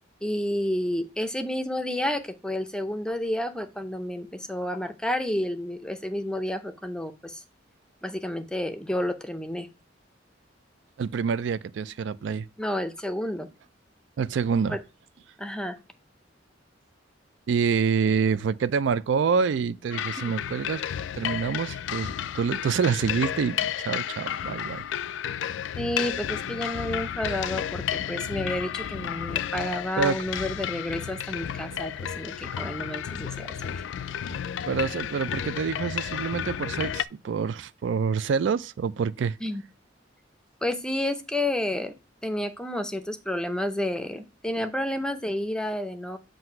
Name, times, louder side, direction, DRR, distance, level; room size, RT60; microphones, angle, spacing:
voice 1, 0.2-7.4 8.0-9.7 12.6-13.5 14.7-14.8 15.4-15.8 20.2-20.3 25.8-33.5 39.4-39.6 40.6-41.9 42.2-46.2, left 1 dB, 5° left, 0.6 m, -30 dB
voice 2, 11.0-12.5 14.2-14.8 17.5-20.8 21.1-24.8 30.0-30.2 34.3-34.4 34.7-39.4, right 6 dB, 70° right, 0.4 m, -27 dB
sound 1, 19.9-37.0, left 9 dB, 75° left, 0.3 m, -32 dB
7.7 x 2.6 x 5.7 m
head